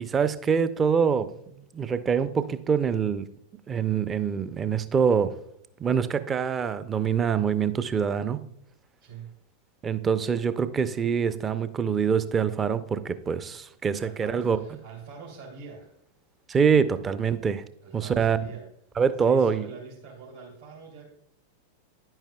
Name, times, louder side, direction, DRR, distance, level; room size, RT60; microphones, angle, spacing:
voice 1, 0.0-3.2 3.7-5.3 5.8-8.4 9.8-14.6 16.5-17.6 17.9-18.4 19.0-19.7, right 6 dB, 20° right, 13 dB, 0.5 m, -25 dB
voice 2, 9.0-9.3 13.9-15.9 17.8-18.7 19.2-21.0, right 5 dB, 70° right, -6 dB, 2.5 m, -44 dB
10.5 x 9.0 x 2.2 m, 0.74 s
figure-of-eight pair, 90°, 0 cm